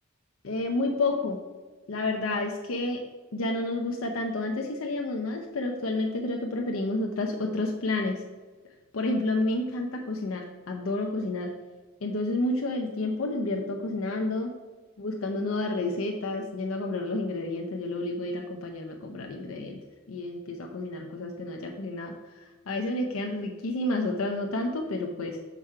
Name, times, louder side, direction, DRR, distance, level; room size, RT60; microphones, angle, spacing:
voice 1, 0.4-1.4 1.9-3.0 3.3-8.2 8.9-11.5 12.0-14.5 15.0-19.8 20.1-25.4, left 2 dB, 85° left, 2 dB, 0.7 m, -30 dB
6.0 x 4.8 x 5.6 m, 1.3 s
head